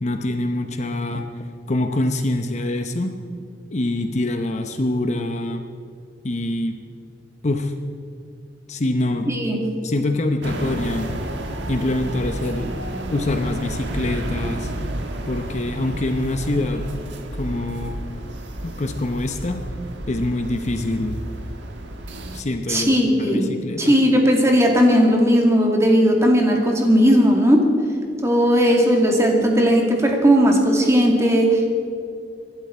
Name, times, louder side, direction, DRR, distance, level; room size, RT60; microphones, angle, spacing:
voice 1, 0.0-3.2 3.7-5.6 6.2-6.8 7.4-7.7 8.7-9.3 9.8-11.2 11.7-12.7 13.1-14.7 15.3-16.9 17.3-18.0 18.6-19.6 20.1-21.2 22.3-24.0, left 1 dB, 40° left, 6 dB, 0.8 m, -25 dB
voice 2, 9.3-9.6 22.7-23.5 23.8-27.7 28.2-31.8, equal, 15° right, 1 dB, 2.2 m, -17 dB
sound 1, 10.4-22.4, right 1 dB, 80° right, 1.5 m, -31 dB
25.0 x 11.5 x 4.4 m, 2.4 s
head